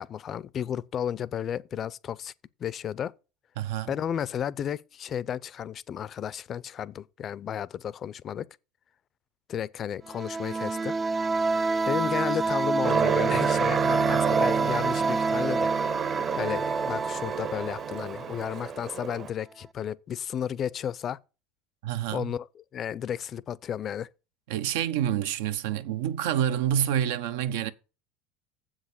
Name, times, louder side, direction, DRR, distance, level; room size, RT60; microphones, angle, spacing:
voice 1, 0.0-2.3 2.6-3.1 3.9-8.5 9.5-11.0 11.9-15.7 16.4-21.2 22.1-22.5 22.7-24.1, left 9 dB, 35° left, 0.5 m, -33 dB
voice 2, 3.6-3.9 21.8-22.3 24.5-27.7, right 10 dB, 80° right, 0.8 m, -28 dB
sound 1, 10.1-18.7, right 3 dB, 20° right, 0.4 m, -28 dB
Aircraft, 12.8-19.3, right 8 dB, 40° right, 1.0 m, -30 dB
7.6 x 6.3 x 6.9 m
supercardioid pair, 130°, 0 cm